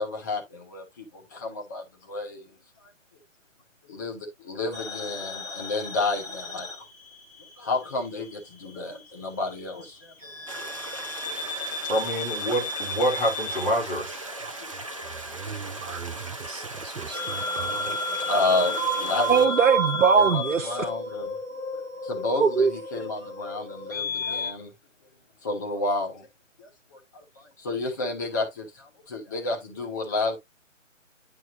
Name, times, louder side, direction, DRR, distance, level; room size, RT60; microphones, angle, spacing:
voice 1, 0.0-2.5 3.9-6.7 7.6-10.3 10.6-10.7 11.2-11.7 14.6-14.7 15.0-15.4 16.1-16.3 16.5-16.6 17.1-17.3 17.8-19.5 20.2-21.3 22.0-24.7 25.4-26.3 26.6-27.0 27.4-30.4, left 3 dB, 15° left, 0.9 m, -31 dB
sound 1, 4.7-7.6 7.8-9.0 10.2-24.5, equal, 80° left, 4.4 m, -32 dB
sound 2, 10.5-19.5, right 2 dB, 25° right, 0.6 m, -39 dB
voice 2, 11.9-14.2, equal, 45° left, 3.6 m, -26 dB
voice 3, 15.3-18.0 19.3-20.9 22.4-22.7, right 5 dB, 75° right, 0.7 m, -24 dB
9.8 x 4.3 x 2.6 m
figure-of-eight pair, 145°, 39 cm